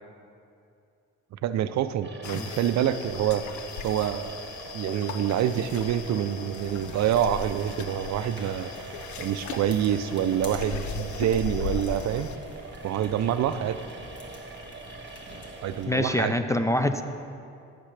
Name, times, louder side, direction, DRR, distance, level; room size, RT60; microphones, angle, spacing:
voice 1, 1.4-3.4 3.8-4.5 4.7-8.7 9.2-12.3 12.8-13.8 15.6-16.3, right 10 dB, 65° right, 12 dB, 0.4 m, -26 dB
sound 1, 2.0-16.1, right 3 dB, 35° right, 1.1 m, -44 dB
sound 2, 2.2-12.4, left 6 dB, 70° left, 0.6 m, -38 dB
sound 3, 6.5-15.9, left 1 dB, 35° left, 1.7 m, -46 dB
voice 2, 15.9-17.0, left 1 dB, 10° left, 8 dB, 0.3 m, -25 dB
13.5 x 6.7 x 3.3 m, 2.5 s
cardioid pair, 90°, 30 cm